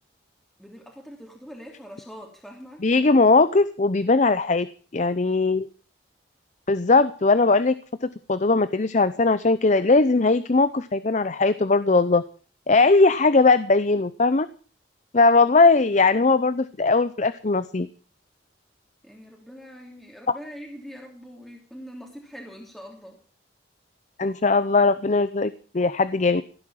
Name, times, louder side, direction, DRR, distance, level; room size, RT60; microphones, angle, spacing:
voice 1, 0.6-2.8 19.0-23.2, equal, ahead, 0 dB, 2.9 m, -43 dB
voice 2, 2.8-4.7 4.9-5.7 6.7-7.7 8.0-12.2 12.7-14.5 15.1-17.9 20.3-20.4 24.2-26.4, left 3 dB, 40° left, 14 dB, 0.7 m, -19 dB
16.5 x 10.0 x 7.3 m, 0.40 s
head